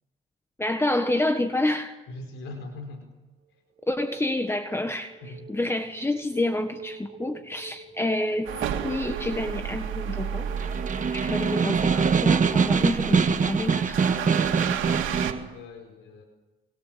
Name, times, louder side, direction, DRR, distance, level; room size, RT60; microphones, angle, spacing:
voice 1, 0.6-2.0 3.9-8.6 8.8-10.5 11.1-14.1, left 1 dB, 10° left, 7 dB, 1.5 m, -28 dB
voice 2, 2.1-3.0 5.2-5.5 15.5-16.2, left 2 dB, 85° left, 4 dB, 4.8 m, -40 dB
sound 1, 3.8-12.7, right 5 dB, 55° right, 4.3 m, -45 dB
sound 2, 8.4-15.3, right 9 dB, 80° right, 2.8 m, -33 dB
Snare drum, 10.5-15.5, right 5 dB, 40° right, 1.6 m, -23 dB
25.5 x 24.5 x 7.6 m, 1.1 s
cardioid pair, 90°, 20 cm